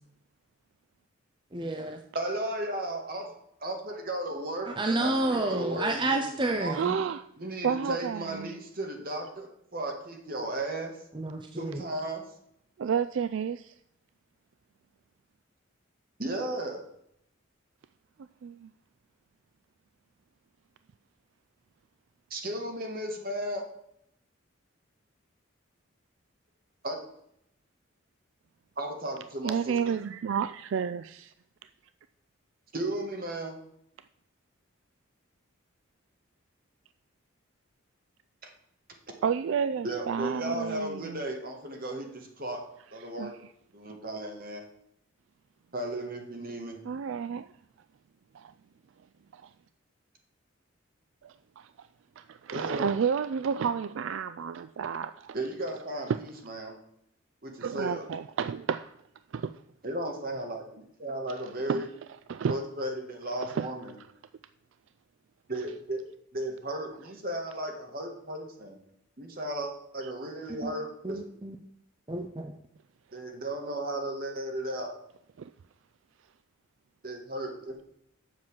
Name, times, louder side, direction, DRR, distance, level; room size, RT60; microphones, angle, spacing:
voice 1, 1.5-2.0 4.7-7.0 11.1-11.8 70.6-70.7 71.0-71.5 72.1-72.6, right 2 dB, 20° right, 4 dB, 0.6 m, -30 dB
voice 2, 2.1-3.3 3.6-4.7 5.0-6.8 7.4-11.0 11.5-12.2 16.2-16.8 22.3-23.7 26.8-27.0 28.8-29.8 32.7-33.6 39.8-43.4 43.7-44.6 45.7-46.8 52.5-52.9 55.3-56.8 57.4-58.1 59.8-61.9 62.5-63.9 65.5-66.0 66.3-68.8 69.2-71.2 73.1-74.9 77.0-77.7, right 1 dB, 45° right, 3 dB, 1.8 m, -35 dB
voice 3, 6.7-7.3 7.6-8.5 12.8-13.7 18.4-18.7 29.4-31.3 39.2-41.2 43.2-43.3 46.8-47.5 48.3-48.5 49.3-49.5 51.2-51.9 52.2-55.4 56.1-56.2 57.6-58.9 59.3-59.6 61.3-61.4 61.7-61.9 62.3-62.6 63.4-63.7 75.4-75.5, right 7 dB, 65° right, 12 dB, 0.3 m, -31 dB
7.6 x 6.0 x 7.3 m, 0.75 s
head